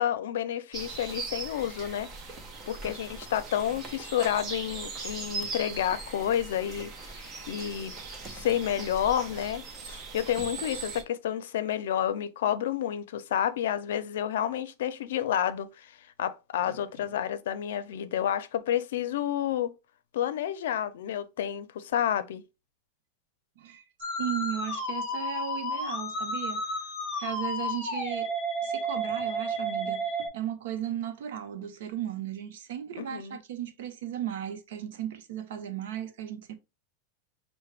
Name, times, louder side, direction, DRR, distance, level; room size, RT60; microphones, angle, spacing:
voice 1, 0.0-2.1 2.7-7.9 8.2-19.7 20.1-22.4 33.0-33.4, left 10 dB, 85° left, 0.5 m, -30 dB
sound 1, 0.7-11.0, right 4 dB, 25° right, 0.7 m, -40 dB
Musical instrument, 24.0-30.3, right 1 dB, 20° left, 2.1 m, -32 dB
voice 2, 24.2-26.7 27.2-28.3 28.6-36.6, right 10 dB, 75° right, 0.7 m, -36 dB
5.6 x 2.1 x 3.3 m
supercardioid pair, 160°, 0 cm